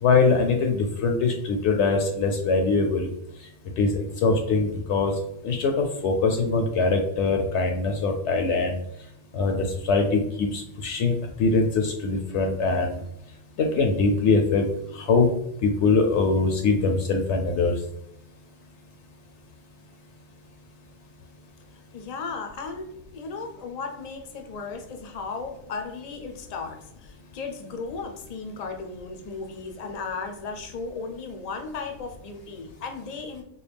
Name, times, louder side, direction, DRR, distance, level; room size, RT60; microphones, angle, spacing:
voice 1, 0.0-3.1 3.8-5.1 5.4-8.8 9.3-13.0 13.6-14.7 14.9-15.3 15.6-17.7, left 4 dB, 70° left, 3 dB, 0.9 m, -22 dB
voice 2, 21.9-33.4, left 4 dB, 50° left, 5 dB, 0.5 m, -35 dB
4.1 x 2.2 x 3.4 m, 0.78 s
omnidirectional pair, 1.3 m